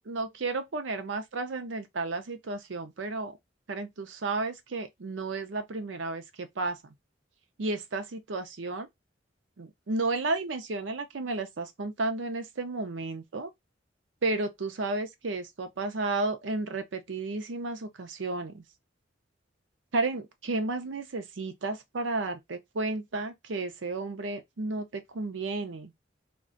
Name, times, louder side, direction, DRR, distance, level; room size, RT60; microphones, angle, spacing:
voice 1, 0.1-3.4 3.7-6.8 7.6-8.9 9.6-13.5 14.2-18.6 19.9-25.9, right 3 dB, 85° right, 0.6 m, -32 dB
2.4 x 2.3 x 3.7 m
head